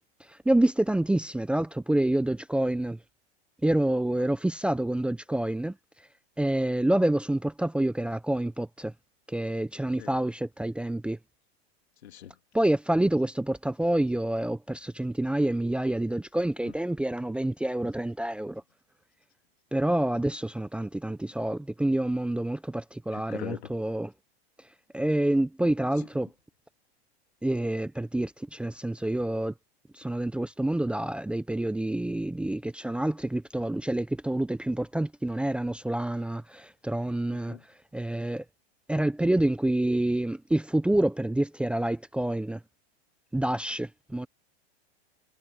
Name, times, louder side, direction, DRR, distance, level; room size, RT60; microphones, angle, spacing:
voice 1, 0.5-3.0 3.6-5.7 6.4-8.9 9.3-11.2 12.5-18.6 19.7-24.1 24.9-26.3 27.4-29.5 29.9-37.6 37.9-38.4 38.9-42.6 43.3-44.3, right 1 dB, 5° right, 0.7 m, -27 dB
voice 2, 12.0-12.3 23.1-23.7 37.3-37.6, left 11 dB, 90° left, 3.0 m, -41 dB
supercardioid pair, 135°, 32 cm